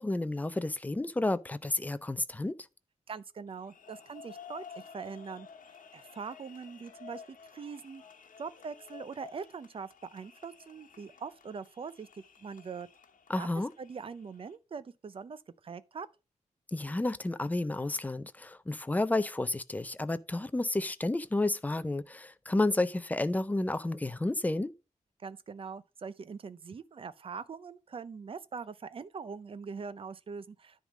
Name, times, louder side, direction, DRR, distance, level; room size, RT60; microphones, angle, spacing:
voice 1, 0.0-2.5 13.3-13.7 16.7-24.7, left 2 dB, 10° left, 0.4 m, -31 dB
voice 2, 3.1-5.5 5.9-8.0 8.4-12.1 12.4-12.9 13.4-13.5 13.8-16.1 25.2-30.9, right 5 dB, 45° right, 0.5 m, -42 dB
sound 1, 3.5-14.6, left 6 dB, 90° left, 1.1 m, -53 dB
10.0 x 3.6 x 6.1 m
wide cardioid pair, 170°, 13 cm